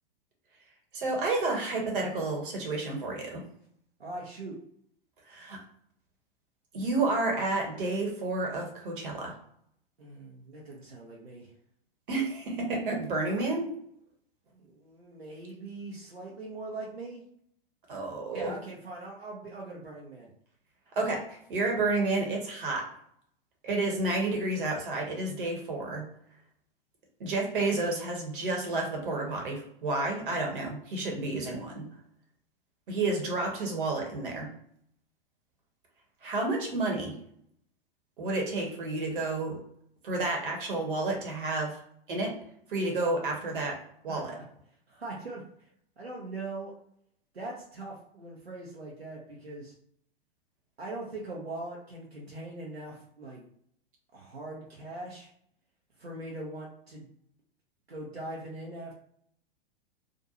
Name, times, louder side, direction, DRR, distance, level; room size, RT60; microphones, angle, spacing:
voice 1, 0.9-3.4 5.2-5.6 6.7-9.4 12.1-13.7 17.9-18.5 20.9-22.9 23.6-26.1 27.2-31.9 32.9-34.5 36.2-37.2 38.2-39.6 40.0-41.8 42.1-42.4 42.7-44.4, right 2 dB, 60° right, 1 dB, 1.0 m, -30 dB
voice 2, 4.0-4.5 10.0-11.5 14.5-17.2 18.3-20.3 44.1-44.4 44.9-45.7 46.0-46.7 47.3-49.7 50.8-53.5 54.1-55.3 56.0-57.1 57.9-58.9, right 2 dB, 85° right, -3 dB, 0.7 m, -41 dB
2.5 x 2.2 x 2.8 m, 0.67 s
figure-of-eight pair, 100°, 30 cm